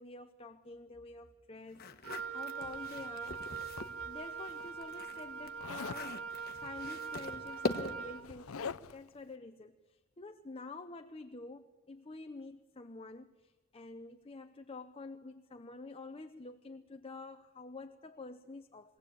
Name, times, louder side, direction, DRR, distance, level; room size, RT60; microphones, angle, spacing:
voice 1, 0.0-3.4 3.9-6.2 6.5-19.0, left 3 dB, 25° left, 7 dB, 0.7 m, -48 dB
sound 1, 1.7-4.0 4.4-8.2, left 2 dB, 45° left, 1.3 m, -42 dB
Wind instrument woodwind instrument, 2.0-8.3, right 6 dB, 65° right, 0.8 m, -42 dB
Zipper (clothing), 2.6-4.3 5.6-6.1 7.2-7.3 7.6-9.1, left 6 dB, 75° left, 0.6 m, -45 dB
23.0 x 17.0 x 8.7 m, 1.2 s
head